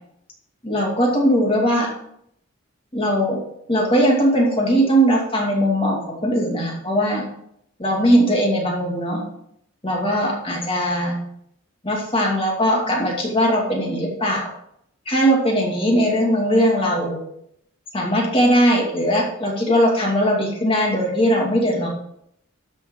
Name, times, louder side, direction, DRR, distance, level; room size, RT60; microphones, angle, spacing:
voice 1, 0.6-1.9 2.9-3.4 3.7-7.2 7.8-9.2 9.8-11.2 11.8-14.5 15.1-17.2 17.9-21.9, equal, 25° left, -1 dB, 2.3 m, -19 dB
12.0 x 6.4 x 3.8 m, 0.72 s
head